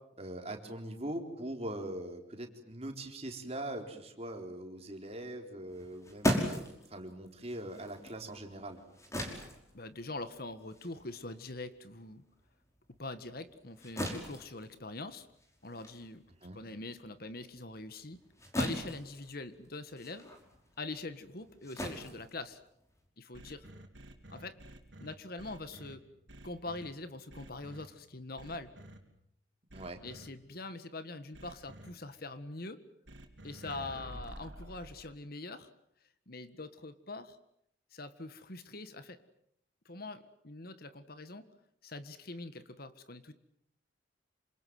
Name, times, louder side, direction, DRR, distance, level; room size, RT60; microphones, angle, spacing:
voice 1, 0.2-8.8 16.4-16.6 29.7-30.0, right 1 dB, 35° right, 4 dB, 4.1 m, -42 dB
sound 1, 5.7-12.5 12.9-23.1, equal, 15° left, 5.3 m, -39 dB
voice 2, 9.7-12.2 13.0-15.3 15.6-16.2 16.5-18.2 18.6-20.3 20.8-22.6 23.2-23.7 24.3-24.6 25.0-26.0 26.4-28.7 30.0-32.8 33.4-35.7 36.3-37.4 37.9-39.2 39.8-41.4 41.8-43.3, left 2 dB, 50° left, 11 dB, 1.7 m, -43 dB
sound 2, 23.3-25.9 26.3-26.9 27.3-27.8 28.4-29.0 29.7-30.3 31.3-31.9 33.1-35.0, right 1 dB, 65° right, 4.3 m, -49 dB
28.0 x 26.5 x 7.8 m, 0.73 s
head